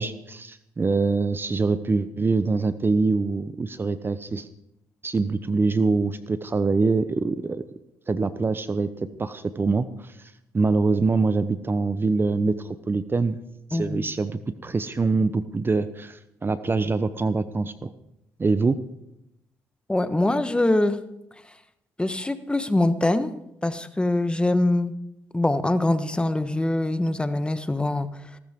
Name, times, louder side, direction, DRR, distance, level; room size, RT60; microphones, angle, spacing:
voice 1, 0.0-4.5 5.0-7.6 8.1-10.1 10.5-13.4 13.7-17.9 18.4-18.8, right 3 dB, 30° right, 13 dB, 0.9 m, -24 dB
voice 2, 13.7-14.1 19.9-21.0 22.0-23.3 23.6-24.9 25.3-28.1, left 2 dB, 15° left, 11 dB, 1.2 m, -23 dB
18.5 x 13.5 x 3.7 m, 0.84 s
supercardioid pair, 60°, 7 cm